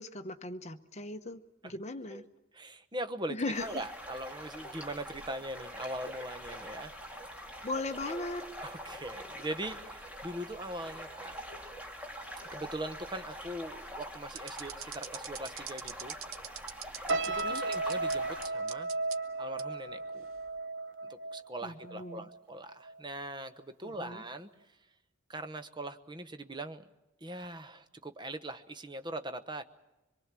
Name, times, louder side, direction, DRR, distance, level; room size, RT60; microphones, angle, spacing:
voice 1, 0.0-2.2 3.3-3.8 7.6-8.5 17.3-17.6 21.6-22.2 23.8-24.2, left 2 dB, 35° left, 8 dB, 1.0 m, -38 dB
voice 2, 2.5-6.9 8.1-8.3 8.6-11.3 12.5-16.2 17.3-18.9 19.4-20.3 21.0-24.5 25.3-26.9 27.2-29.6, right 1 dB, 20° right, 10 dB, 1.0 m, -41 dB
sound 1, 3.5-18.5, equal, 5° right, 2.5 m, -45 dB
sound 2, 14.3-18.2 18.4-19.2 19.6-19.7 20.3-20.6, right 9 dB, 90° right, 1.1 m, -42 dB
sound 3, 17.1-22.4 22.7-23.0, right 3 dB, 65° right, 1.2 m, -35 dB
25.0 x 22.5 x 7.5 m, 1.0 s
head